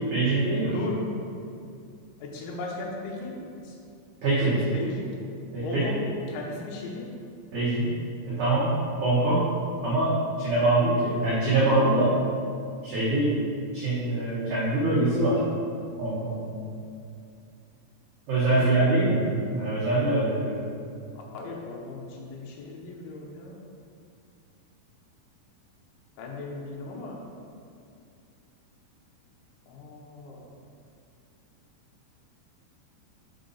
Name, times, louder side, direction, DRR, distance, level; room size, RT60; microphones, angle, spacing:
voice 1, 0.1-0.8 4.2-4.6 5.5-5.9 7.5-7.9 8.3-8.7 9.0-9.4 9.8-12.1 12.8-13.4 13.7-15.4 16.0-16.5 18.3-19.2 19.5-20.6, right 2 dB, 75° right, -10 dB, 1.8 m, -24 dB
voice 2, 2.2-3.8 4.3-5.1 5.6-6.0 6.3-7.1 18.5-19.0 21.3-23.6 26.2-27.2 29.7-30.4, left 3 dB, 80° left, -1 dB, 3.2 m, -36 dB
6.2 x 5.4 x 3.9 m, 2.4 s
omnidirectional pair, 5.3 m